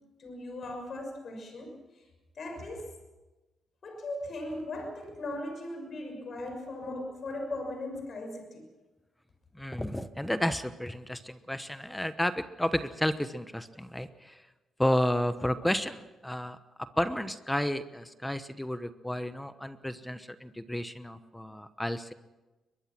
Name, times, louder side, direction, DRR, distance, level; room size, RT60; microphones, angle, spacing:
voice 1, 0.0-2.0 2.4-2.9 3.8-8.7, left 1 dB, 50° left, 4 dB, 6.3 m, -38 dB
voice 2, 9.6-14.4 14.8-16.6 17.0-22.1, left 1 dB, 5° left, 11 dB, 1.0 m, -31 dB
22.5 x 21.5 x 6.1 m, 1.1 s
cardioid pair, 105°, 0 cm